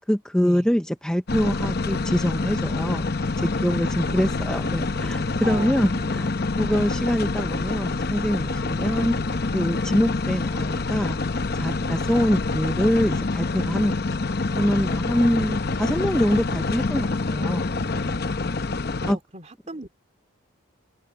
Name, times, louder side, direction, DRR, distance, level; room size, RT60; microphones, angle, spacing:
voice 1, 0.1-3.1 3.4-9.2 9.5-11.2 11.5-14.0 14.5-17.7 19.1-19.2, equal, 5° left, 0.5 m, -24 dB
sound 1, 1.3-19.1, left 3 dB, 50° left, 0.8 m, -26 dB
voice 2, 4.0-4.5 5.4-6.3 12.0-12.2 17.7-18.2 19.0-19.9, right 1 dB, 30° right, 2.7 m, -38 dB
head